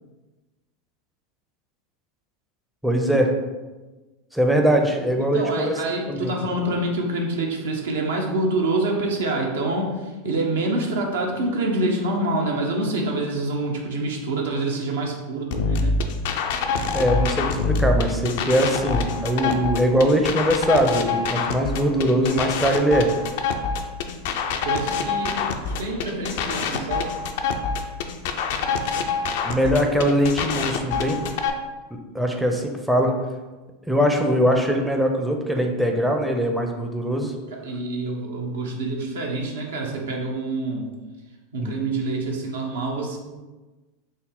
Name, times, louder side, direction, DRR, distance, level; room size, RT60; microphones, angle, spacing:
voice 1, 2.8-3.3 4.3-5.7 6.1-6.3 16.9-23.1 29.4-31.2 32.1-33.1 33.9-37.3 41.6-41.7, equal, 5° right, 2 dB, 0.5 m, -21 dB
voice 2, 5.2-16.0 24.6-27.1 37.5-40.9 41.5-43.2, right 2 dB, 75° right, 0 dB, 0.7 m, -26 dB
sound 1, 15.5-31.5, left 4 dB, 65° left, 0.3 m, -25 dB
3.8 x 2.0 x 3.6 m, 1.2 s
hypercardioid pair, 90°, 0 cm